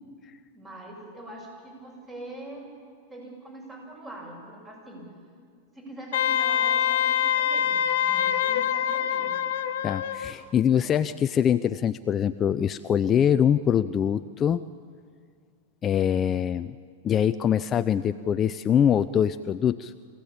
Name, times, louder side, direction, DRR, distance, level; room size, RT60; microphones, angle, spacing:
voice 1, 0.5-2.7 3.1-5.1 5.7-9.3, right 1 dB, 20° right, 0 dB, 7.8 m, -43 dB
Wind instrument woodwind instrument, 6.1-10.3, left 10 dB, 70° left, 1.1 m, -25 dB
voice 2, 9.8-14.6 15.8-16.8 17.0-19.9, left 9 dB, 25° left, 11 dB, 0.5 m, -23 dB
25.5 x 16.5 x 8.7 m, 2.1 s
hypercardioid pair, 130°, 0 cm